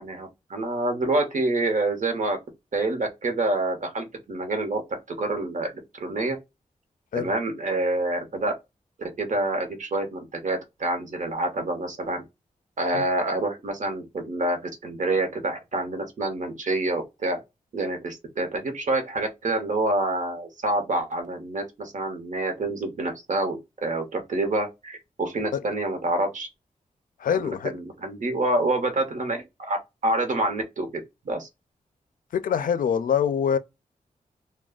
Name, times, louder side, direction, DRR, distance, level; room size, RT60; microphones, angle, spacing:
voice 1, 0.0-2.4 2.7-4.8 5.1-5.7 6.0-6.4 7.1-8.5 9.0-12.2 12.8-17.4 17.7-26.5 27.3-29.8 30.0-31.5, right 2 dB, 65° right, 0.9 m, -27 dB
voice 2, 27.2-27.7 32.3-33.6, left 8 dB, 85° left, 0.4 m, -24 dB
2.4 x 2.2 x 3.5 m
wide cardioid pair, 125°, 14 cm